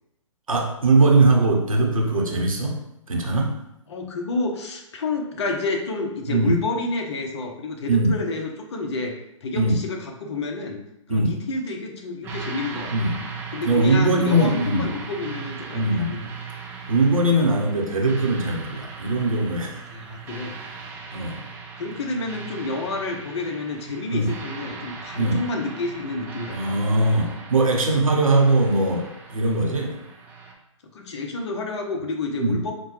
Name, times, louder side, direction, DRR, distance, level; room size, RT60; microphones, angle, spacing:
voice 1, 0.5-2.8 3.1-3.5 6.3-6.6 7.9-8.2 9.5-9.8 11.1-11.4 12.9-13.3 13.6-14.9 15.7-16.1 16.9-19.8 21.1-21.4 24.1-24.3 25.2-25.4 26.5-30.0 32.4-32.6, right 2 dB, 85° right, 1 dB, 0.9 m, -21 dB
voice 2, 3.9-9.1 9.4-10.8 11.1-13.1 13.5-16.3 19.9-20.6 21.8-26.7 30.9-32.7, left 3 dB, 55° left, 2 dB, 0.7 m, -29 dB
sound 1, 12.2-30.5, right 5 dB, 10° right, 0.3 m, -38 dB
4.5 x 2.2 x 3.1 m, 0.84 s
figure-of-eight pair, 130°, 17 cm